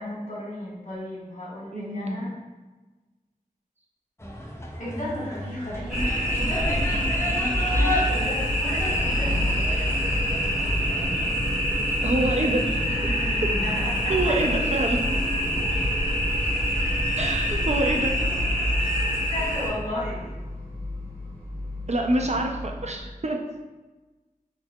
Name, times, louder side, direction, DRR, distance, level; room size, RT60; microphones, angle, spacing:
voice 1, 0.0-2.3 4.8-9.4 12.8-14.4 15.5-15.7 19.3-20.3, left 1 dB, 55° left, -6 dB, 1.4 m, -34 dB
voice 2, 1.7-2.2 12.0-12.7 13.4-13.5 14.1-15.0 17.2-18.3 21.9-23.4, right 1 dB, 50° right, 2 dB, 0.4 m, -26 dB
sound 1, 4.2-11.3, left 1 dB, 20° left, 0.5 m, -34 dB
sound 2, 5.7-23.0, left 1 dB, 80° right, 1.4 m, -33 dB
sound 3, 5.9-19.7, equal, 5° right, 1.3 m, -26 dB
3.6 x 3.1 x 2.2 m, 1.2 s
wide cardioid pair, 45°, 15 cm